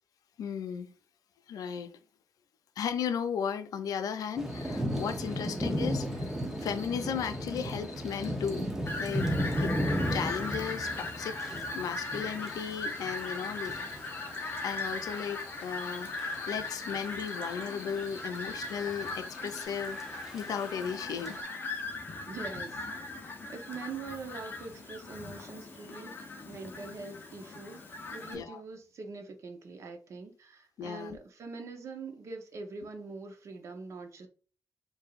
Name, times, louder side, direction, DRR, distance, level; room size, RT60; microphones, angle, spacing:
voice 1, 0.4-0.9 1.5-2.0 2.8-6.3 6.6-8.7 9.0-9.3 9.6-9.7 10.1-11.4 11.7-13.7 14.6-20.0 20.3-21.4 28.3-28.6 30.8-31.2, left 7 dB, 85° left, 0.6 m, -35 dB
Thunder / Rain, 4.4-21.4, equal, 5° right, 0.8 m, -36 dB
sound 1, 4.5-19.7, left 3 dB, 60° left, 1.4 m, -53 dB
Fowl, 8.9-28.3, left 3 dB, 35° left, 0.9 m, -39 dB
voice 2, 22.3-34.3, right 4 dB, 55° right, 0.9 m, -44 dB
4.7 x 2.7 x 2.5 m
wide cardioid pair, 155°, 6 cm